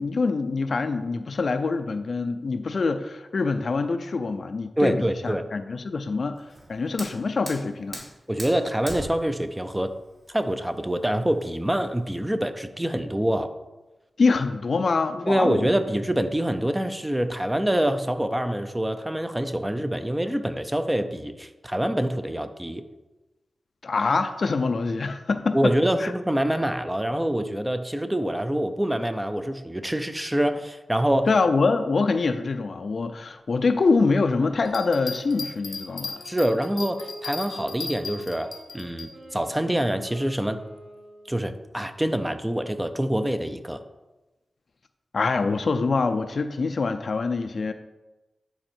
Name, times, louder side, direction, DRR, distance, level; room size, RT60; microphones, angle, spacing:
voice 1, 0.0-6.4 6.7-8.0 14.2-15.7 23.8-25.7 26.0-26.1 31.3-36.2 45.1-47.7, left 4 dB, 65° left, 9 dB, 0.5 m, -25 dB
voice 2, 4.8-5.5 8.3-9.9 10.3-13.5 15.3-22.8 25.5-31.3 36.3-40.6 41.3-43.8, right 1 dB, 10° right, 8 dB, 0.6 m, -25 dB
Fire, 6.4-12.3, right 1 dB, 45° right, 2.5 m, -42 dB
Wind instrument woodwind instrument, 33.9-41.7, right 1 dB, 70° right, 2.3 m, -45 dB
sound 1, 34.6-39.1, left 4 dB, 85° left, 0.8 m, -36 dB
10.0 x 4.2 x 4.5 m, 1.1 s
cardioid pair, 70°, 0 cm